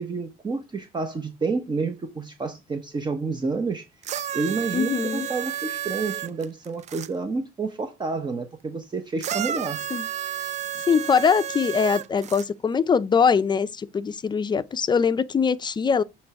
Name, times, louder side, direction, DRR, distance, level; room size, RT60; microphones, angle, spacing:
voice 1, 0.0-3.9 4.3-9.8, right 4 dB, 25° right, 0.9 m, -29 dB
sound 1, 4.0-7.1 9.2-12.5 13.4-13.5, right 10 dB, 45° right, 0.4 m, -31 dB
voice 2, 4.7-5.3 9.9-10.0 10.9-16.0, left 6 dB, 25° left, 0.6 m, -22 dB
8.6 x 3.3 x 4.8 m
cardioid pair, 110°, 17 cm